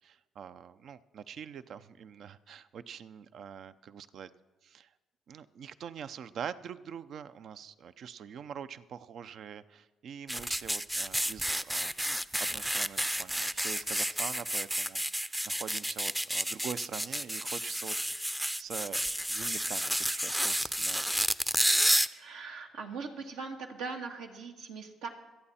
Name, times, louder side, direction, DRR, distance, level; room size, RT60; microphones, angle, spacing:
voice 1, 0.0-4.3 4.6-4.9 5.3-19.0 19.3-21.0, right 8 dB, 65° right, 13 dB, 0.6 m, -44 dB
sound 1, 10.3-22.1, equal, 5° right, 0.5 m, -30 dB
voice 2, 22.1-25.1, right 4 dB, 90° right, 1 dB, 1.8 m, -40 dB
26.5 x 8.9 x 4.3 m, 1.2 s
supercardioid pair, 60°, 0 cm